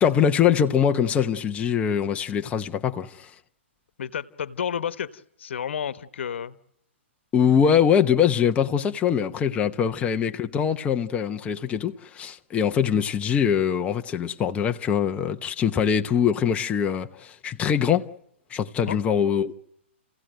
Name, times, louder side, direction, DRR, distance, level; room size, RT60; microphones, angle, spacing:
voice 1, 0.0-3.3 7.3-18.1 18.5-19.6, left 8 dB, 20° left, 0.9 m, -23 dB
voice 2, 4.0-6.6 10.0-10.1 18.8-19.0, left 8 dB, 70° left, 1.2 m, -31 dB
29.5 x 16.5 x 9.1 m
hypercardioid pair, 135°, 7 cm